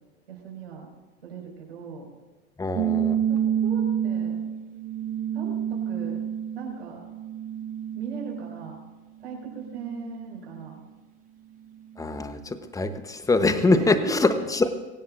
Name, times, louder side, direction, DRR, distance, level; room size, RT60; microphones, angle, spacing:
voice 1, 0.3-0.9 1.2-2.1 3.3-4.4 5.3-6.2 6.5-7.0 8.0-8.8 9.2-10.8 13.7-14.5, right 5 dB, 75° right, -1 dB, 6.0 m, -38 dB
voice 2, 2.6-3.2 12.0-14.7, left 3 dB, 10° left, 10 dB, 1.1 m, -23 dB
sound 1, 2.8-8.8 9.2-10.6, right 9 dB, 25° right, 0.5 m, -29 dB
24.5 x 16.5 x 2.7 m, 1.2 s
hypercardioid pair, 90°, 32 cm